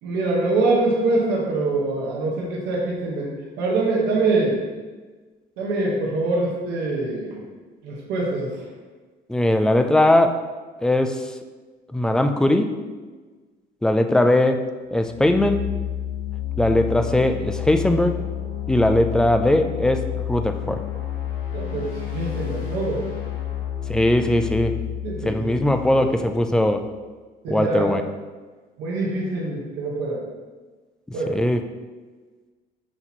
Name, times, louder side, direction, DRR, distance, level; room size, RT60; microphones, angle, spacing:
voice 1, 0.0-4.6 5.6-7.4 7.8-8.5 21.5-23.1 25.0-25.7 26.0-26.1 27.4-28.0 28.8-30.2 31.1-31.4, right 2 dB, 90° right, -3 dB, 1.3 m, -24 dB
voice 2, 9.3-10.4 10.8-11.3 11.9-12.7 13.8-14.6 14.9-15.7 16.6-18.2 18.7-20.8 23.9-24.7 25.2-26.8 27.5-28.0 31.3-31.6, left 1 dB, 5° left, 6 dB, 0.3 m, -20 dB
sound 1, 15.0-26.8, left 11 dB, 50° left, 1.7 m, -30 dB
7.8 x 3.0 x 4.2 m, 1.3 s
cardioid pair, 150°, 17 cm